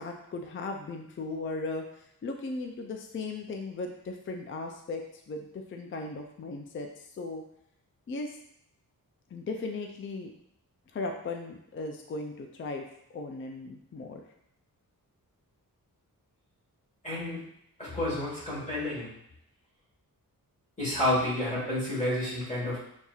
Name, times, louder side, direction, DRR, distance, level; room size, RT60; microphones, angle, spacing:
voice 1, 0.0-6.9 7.2-7.4 8.1-8.4 9.3-10.3 10.9-12.9 13.1-14.2, left 3 dB, 35° left, 3 dB, 0.4 m, -37 dB
voice 2, 17.0-17.4 17.8-19.1 20.8-22.8, left 1 dB, 20° left, -8 dB, 1.5 m, -30 dB
7.0 x 2.7 x 2.4 m, 0.73 s
wide cardioid pair, 140°, 36 cm